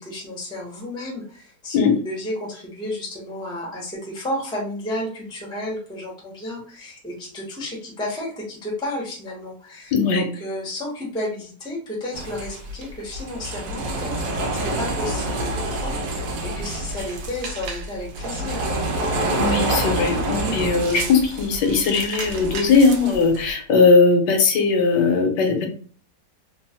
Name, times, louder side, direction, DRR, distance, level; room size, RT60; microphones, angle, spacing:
voice 1, 0.0-1.8 2.0-18.7, left 1 dB, 5° left, -2 dB, 0.3 m, -32 dB
voice 2, 9.9-10.2 19.4-25.7, left 4 dB, 80° left, 4 dB, 1.3 m, -18 dB
sound 1, 12.1-23.5, right 1 dB, 70° right, 0.8 m, -27 dB
3.0 x 2.0 x 2.7 m, 0.43 s
omnidirectional pair, 1.9 m